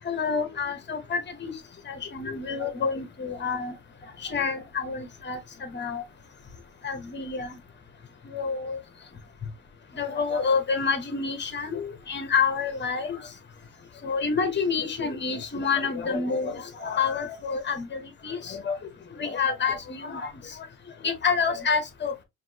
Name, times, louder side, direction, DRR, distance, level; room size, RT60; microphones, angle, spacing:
voice 1, 0.0-1.5 1.9-3.7 4.2-6.0 6.8-7.5 8.3-8.8 9.9-13.2 14.0-18.8 19.2-20.3 21.0-22.1, left 5 dB, 30° left, 1.1 m, -28 dB
5.8 x 2.8 x 2.8 m
cardioid pair, 130°, 37 cm